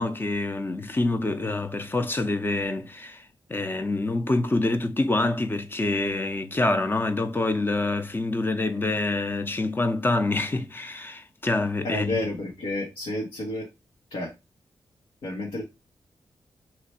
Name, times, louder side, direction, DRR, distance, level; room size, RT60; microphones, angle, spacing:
voice 1, 0.0-12.3, left 2 dB, 25° left, 0.6 m, -26 dB
voice 2, 11.8-13.7 14.1-14.3 15.2-15.6, left 1 dB, 90° left, 1.2 m, -30 dB
3.1 x 3.0 x 4.3 m
cardioid pair, 70°, 9 cm